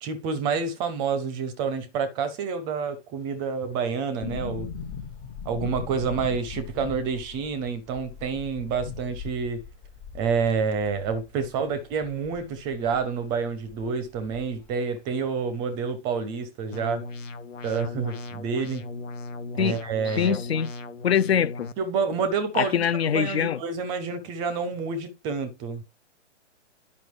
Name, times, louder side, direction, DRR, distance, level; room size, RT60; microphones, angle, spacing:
voice 1, 0.0-4.7 5.5-9.6 10.1-17.1 17.6-18.9 19.6-20.4 21.8-22.8 23.1-25.8, right 5 dB, 10° right, 0.5 m, -28 dB
sound 1, 4.2-13.0 13.3-13.4 13.7-14.7 15.0-15.1, left 7 dB, 25° left, 1.1 m, -39 dB
sound 2, 16.7-21.7, left 3 dB, 90° left, 0.9 m, -37 dB
voice 2, 20.0-20.7 21.0-21.7 22.5-23.6, left 8 dB, 60° left, 0.5 m, -23 dB
10.5 x 5.3 x 3.1 m
figure-of-eight pair, 125°, 37 cm